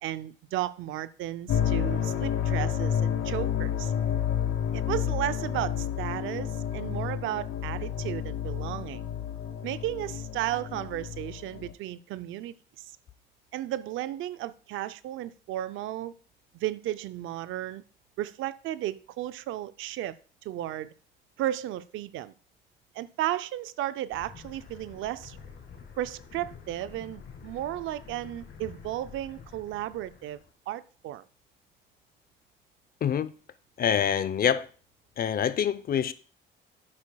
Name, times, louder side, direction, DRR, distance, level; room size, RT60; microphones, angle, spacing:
voice 1, 0.0-3.9 4.7-9.0 9.6-12.9 13.5-16.1 16.5-17.8 18.2-20.9 21.4-22.3 22.9-25.4 26.0-31.2, right 13 dB, 90° right, 0.5 m, -34 dB
sound 1, 1.5-11.7, left 9 dB, 80° left, 1.0 m, -30 dB
sound 2, 24.1-30.5, left 6 dB, 65° left, 1.8 m, -48 dB
voice 2, 33.0-33.3 33.8-34.7 35.2-36.1, left 8 dB, 50° left, 0.6 m, -25 dB
10.5 x 8.5 x 2.3 m
cardioid pair, 90°, 20 cm